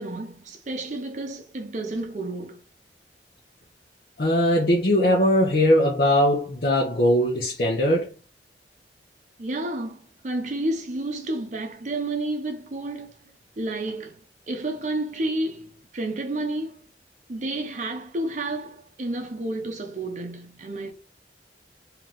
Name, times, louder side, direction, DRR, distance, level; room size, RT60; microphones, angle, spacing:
voice 1, 0.0-2.6 9.4-13.1 13.6-14.2 14.5-16.8 17.3-20.9, right 2 dB, 45° right, 0.6 m, -30 dB
voice 2, 4.2-8.1, left 1 dB, 55° left, 0.9 m, -20 dB
3.2 x 2.9 x 3.8 m
head